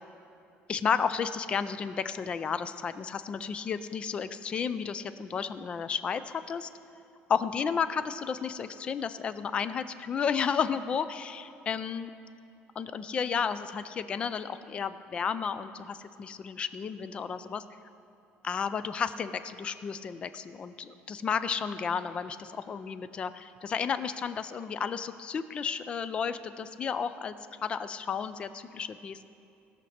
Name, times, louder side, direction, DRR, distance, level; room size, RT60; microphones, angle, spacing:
voice 1, 0.7-6.7 7.3-12.1 12.8-17.6 18.4-27.3 27.6-29.3, left 6 dB, 25° left, 13 dB, 0.3 m, -32 dB
18.0 x 6.5 x 4.3 m, 2.7 s
cardioid pair, 175°, 4 cm